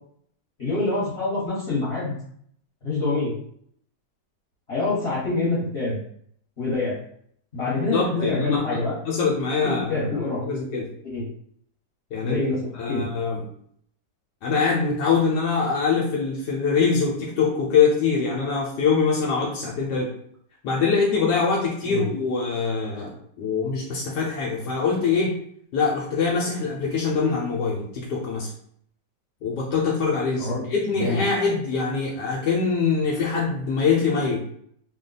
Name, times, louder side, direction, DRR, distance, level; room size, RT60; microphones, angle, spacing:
voice 1, 0.6-2.2 2.8-3.3 4.7-6.0 6.6-6.9 7.5-9.0 9.6-10.4 11.0-11.2 12.2-12.6 12.9-13.1 21.8-22.1 30.4-30.6 31.0-31.2, left 3 dB, 40° left, -9 dB, 1.3 m, -26 dB
voice 2, 7.6-8.8 9.1-10.0 10.4-10.9 12.1-13.4 14.4-20.1 20.6-23.1 23.4-25.3 25.7-28.5 29.4-34.4, left 5 dB, 80° left, -3 dB, 1.3 m, -23 dB
3.1 x 2.1 x 3.9 m, 0.65 s
omnidirectional pair, 1.8 m